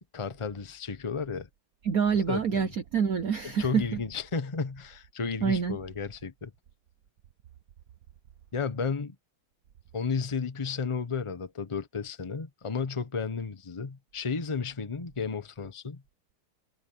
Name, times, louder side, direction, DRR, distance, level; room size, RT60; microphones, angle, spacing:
voice 1, 0.1-1.5 2.3-2.7 3.6-6.5 8.5-9.1 9.9-16.0, left 5 dB, 20° left, 0.8 m, -33 dB
voice 2, 1.8-4.0 5.4-5.8, right 6 dB, 55° right, 1.1 m, -27 dB
omnidirectional pair, 2.3 m